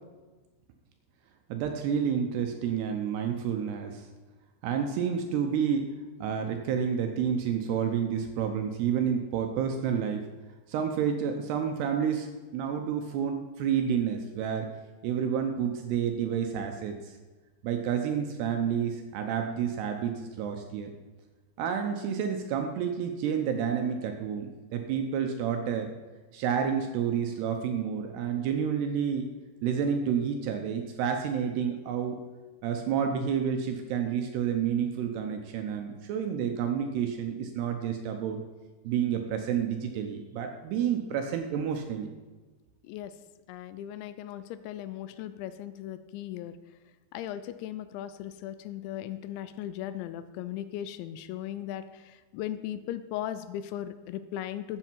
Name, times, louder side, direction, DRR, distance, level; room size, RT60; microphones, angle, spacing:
voice 1, 1.5-4.1 4.6-5.9 6.2-10.2 10.7-12.3 12.5-14.7 15.0-17.1 17.6-20.9 21.6-25.9 26.3-29.2 29.6-32.2 32.6-38.4 38.8-42.1, right 7 dB, 75° right, 4 dB, 2.5 m, -29 dB
voice 2, 42.8-43.1 43.5-46.6 47.1-54.8, left 11 dB, 85° left, 12 dB, 2.8 m, -37 dB
13.0 x 8.0 x 4.5 m, 1.3 s
omnidirectional pair, 5.4 m